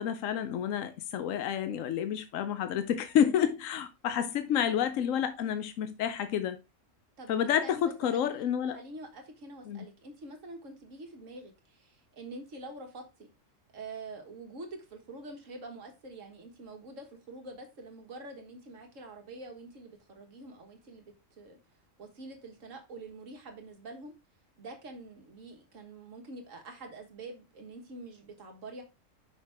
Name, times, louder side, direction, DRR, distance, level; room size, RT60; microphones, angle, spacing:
voice 1, 0.0-6.6 7.3-8.8 9.7-9.8, left 9 dB, 85° left, 1.0 m, -29 dB
voice 2, 7.6-8.4 8.7-13.1 13.7-21.6 22.0-24.1 24.6-28.8, right 2 dB, 80° right, 1.8 m, -46 dB
5.8 x 5.6 x 3.5 m
omnidirectional pair, 1.3 m